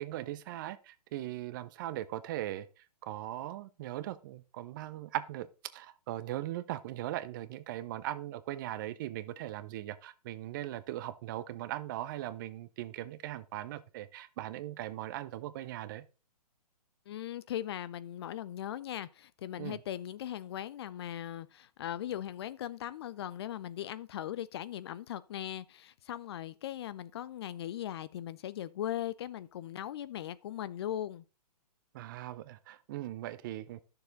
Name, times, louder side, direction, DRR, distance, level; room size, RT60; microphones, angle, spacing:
voice 1, 0.0-2.7 3.0-5.5 5.7-16.0 19.6-19.8 31.9-33.8, right 14 dB, 30° right, 0.6 m, -39 dB
voice 2, 17.1-31.2, left 11 dB, 40° left, 0.5 m, -39 dB
11.5 x 6.9 x 3.9 m
hypercardioid pair, 140°, 20 cm